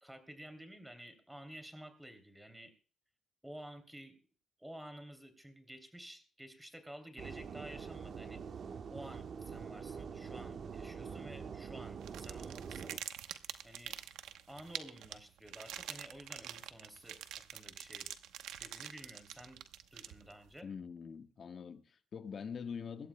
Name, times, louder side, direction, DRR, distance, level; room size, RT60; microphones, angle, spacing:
voice 1, 0.0-2.7 3.4-4.2 4.6-8.4 8.9-13.0 13.6-14.0 14.5-18.1 18.6-19.6 19.9-20.7, right 1 dB, 5° right, 2.9 m, -52 dB
sound 1, 7.2-13.0, right 6 dB, 55° right, 1.1 m, -45 dB
sound 2, 12.0-20.5, right 11 dB, 90° right, 0.9 m, -46 dB
voice 2, 20.6-23.1, left 6 dB, 50° left, 1.3 m, -44 dB
24.0 x 12.5 x 2.2 m
cardioid pair, 90°, 0 cm